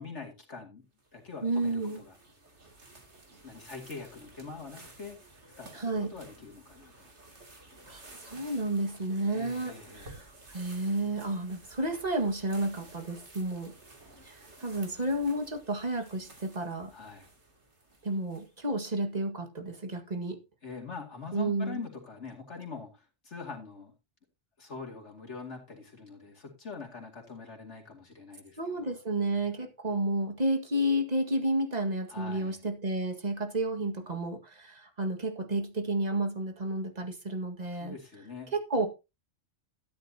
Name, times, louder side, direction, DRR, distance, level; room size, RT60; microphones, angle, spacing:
voice 1, 0.0-2.2 3.4-5.2 5.6-7.1 9.3-10.2 16.9-17.3 20.6-23.9 24.6-28.9 32.1-32.6 37.8-38.5, left 4 dB, 70° left, 2.8 m, -44 dB
sound 1, 1.0-18.8, right 2 dB, 70° right, 3.1 m, -53 dB
voice 2, 1.4-2.0 5.7-6.2 7.9-13.7 14.2-16.9 18.0-20.4 21.3-21.8 28.6-38.0 38.5-38.9, right 1 dB, 35° right, 2.0 m, -31 dB
13.0 x 11.0 x 2.9 m
omnidirectional pair, 1.2 m